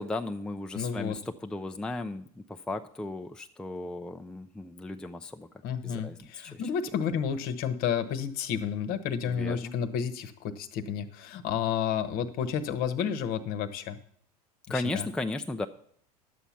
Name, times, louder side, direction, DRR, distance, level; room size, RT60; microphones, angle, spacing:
voice 1, 0.0-2.2 2.5-5.5 5.8-6.6 9.2-9.7 14.7-15.7, left 2 dB, 5° left, 6 dB, 0.5 m, -35 dB
voice 2, 0.7-1.2 5.6-14.0 14.7-15.1, left 7 dB, 50° left, 11 dB, 1.0 m, -31 dB
11.0 x 7.0 x 5.7 m, 0.63 s
hypercardioid pair, 85°, 20 cm